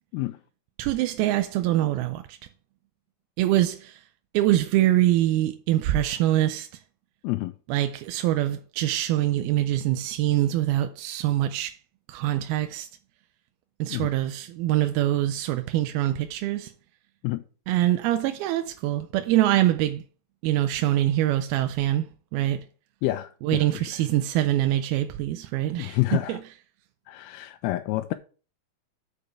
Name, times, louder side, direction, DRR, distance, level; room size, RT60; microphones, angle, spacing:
voice 1, 0.8-2.4 3.4-4.1 4.3-6.8 7.7-11.8 12.1-12.9 13.8-16.7 17.7-20.0 20.4-22.7 23.4-26.4, right 14 dB, 90° right, 2.5 m, -24 dB
voice 2, 23.0-23.9 25.8-26.4 27.1-28.1, left 18 dB, 90° left, 2.5 m, -28 dB
6.8 x 5.1 x 6.7 m
omnidirectional pair, 4.3 m